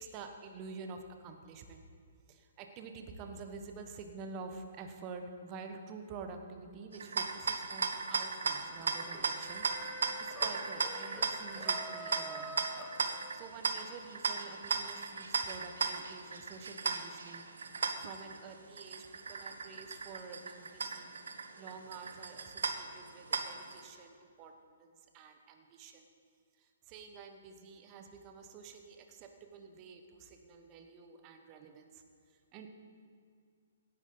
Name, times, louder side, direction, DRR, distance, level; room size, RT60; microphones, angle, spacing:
voice 1, 0.0-1.8 2.3-12.6 13.0-17.4 18.0-21.1 21.6-26.0 26.6-32.0 32.3-32.7, right 4 dB, 30° right, 5 dB, 1.3 m, -49 dB
sound 1, 6.9-23.8, right 4 dB, 70° right, 1.0 m, -37 dB
sound 2, 8.8-13.6, right 1 dB, ahead, 1.2 m, -47 dB
17.0 x 9.9 x 4.0 m, 2.2 s
figure-of-eight pair, 125°, 0 cm